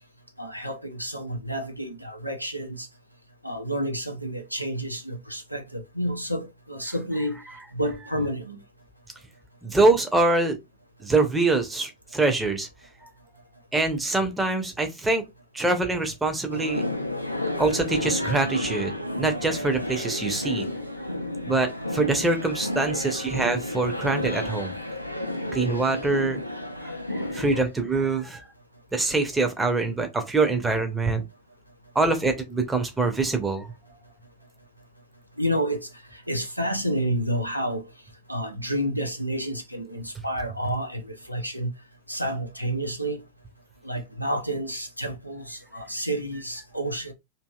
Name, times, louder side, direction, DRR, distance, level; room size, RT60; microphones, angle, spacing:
voice 1, 0.4-2.9 3.4-7.4 7.7-8.6 35.4-37.8 38.3-41.7 42.1-43.2 43.8-47.1, right 1 dB, 90° right, 0.5 m, -30 dB
voice 2, 9.6-10.6 11.0-12.7 13.0-13.1 13.7-15.2 15.5-16.8 17.6-18.9 19.2-20.7 21.5-24.7 25.5-26.4 27.1-28.4 28.9-31.2 31.9-33.7, right 3 dB, 10° right, 0.7 m, -24 dB
sound 1, 16.5-27.6, left 1 dB, 90° left, 0.4 m, -31 dB
2.8 x 2.7 x 2.3 m
figure-of-eight pair, 90°, 0 cm